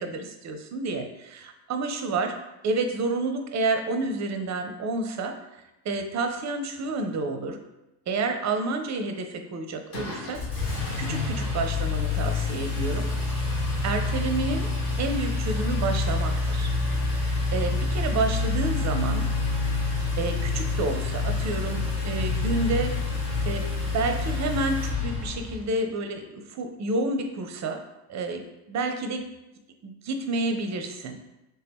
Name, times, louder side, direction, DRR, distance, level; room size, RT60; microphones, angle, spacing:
voice 1, 0.0-2.3 2.6-5.4 5.8-7.6 8.1-10.4 11.0-13.1 13.4-13.5 13.8-14.7 15.0-16.7 17.5-19.3 20.2-23.0 23.5-23.7 23.9-27.8 28.1-29.3 29.8-31.2, right 3 dB, 35° right, 6 dB, 0.6 m, -29 dB
Engine, 9.9-25.6, left 3 dB, 70° left, 1.4 m, -27 dB
3.3 x 2.9 x 3.5 m, 0.97 s
hypercardioid pair, 70°, 49 cm